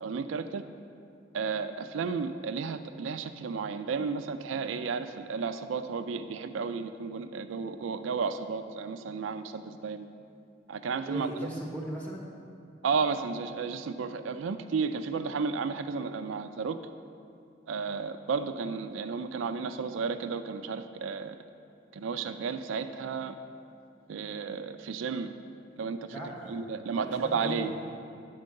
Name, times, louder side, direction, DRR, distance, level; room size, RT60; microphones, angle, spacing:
voice 1, 0.0-0.6 1.3-10.1 10.7-11.3 12.8-16.8 17.7-21.4 21.9-23.3 24.1-25.3 25.8-26.0 26.5-27.7, right 5 dB, 90° right, 9 dB, 0.4 m, -33 dB
voice 2, 11.0-12.2 26.1-26.6 26.9-27.8, right 1 dB, 10° left, -4 dB, 1.4 m, -38 dB
9.5 x 4.5 x 6.4 m, 2.4 s
head